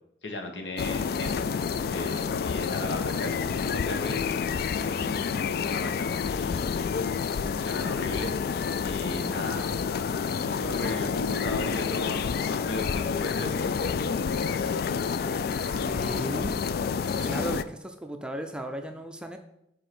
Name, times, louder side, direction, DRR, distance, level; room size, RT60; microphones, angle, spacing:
voice 1, 0.2-1.5 1.9-4.4 4.8-6.9 7.6-8.4 8.8-9.7 10.4-13.8 17.4-17.6, left 1 dB, 90° left, 3 dB, 1.2 m, -37 dB
sound 1, 0.8-17.6, left 6 dB, 60° left, 0.3 m, -29 dB
voice 2, 15.8-16.6 17.2-19.4, right 1 dB, 5° right, 5 dB, 0.5 m, -36 dB
5.2 x 4.5 x 5.9 m, 0.81 s
head